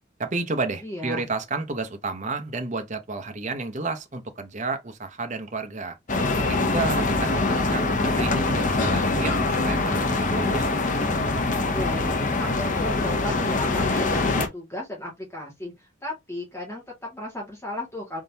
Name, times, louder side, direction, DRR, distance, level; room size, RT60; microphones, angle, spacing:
voice 1, 0.2-6.0 6.5-10.7, right 3 dB, 35° right, 0.7 m, -31 dB
voice 2, 0.8-1.3 11.7-18.2, left 1 dB, 15° left, 1.8 m, -34 dB
sound 1, 6.1-14.5, left 3 dB, 40° left, 0.7 m, -24 dB
4.0 x 3.7 x 2.7 m
head